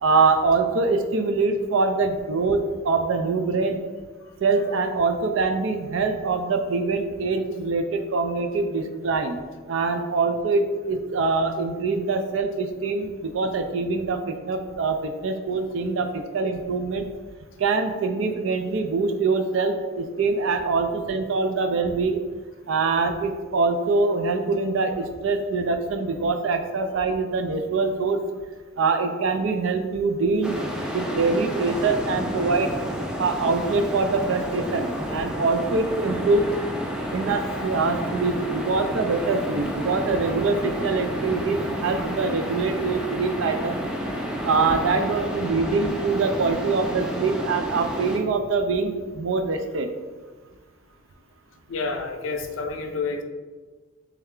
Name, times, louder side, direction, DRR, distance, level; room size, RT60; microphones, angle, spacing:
voice 1, 0.0-3.8 4.4-9.4 9.7-17.1 17.6-22.2 22.7-28.2 28.8-30.6 30.9-32.7 33.2-36.5 37.1-43.8 44.4-49.9, right 4 dB, 75° right, 7 dB, 0.4 m, -24 dB
sound 1, 30.4-48.2, equal, 5° right, 0.3 m, -30 dB
voice 2, 51.7-53.2, left 4 dB, 80° left, 5 dB, 0.5 m, -29 dB
3.5 x 3.2 x 3.6 m, 1.4 s
head